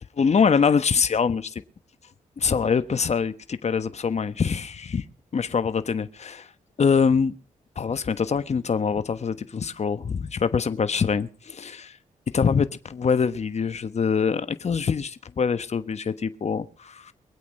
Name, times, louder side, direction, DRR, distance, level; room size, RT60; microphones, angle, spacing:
voice 1, 0.2-1.5 2.4-5.0 5.3-6.5 6.8-7.3 7.8-12.0 12.3-17.1, left 6 dB, 50° left, 1.3 m, -24 dB
24.0 x 8.5 x 5.5 m
cardioid pair, 70°, 14 cm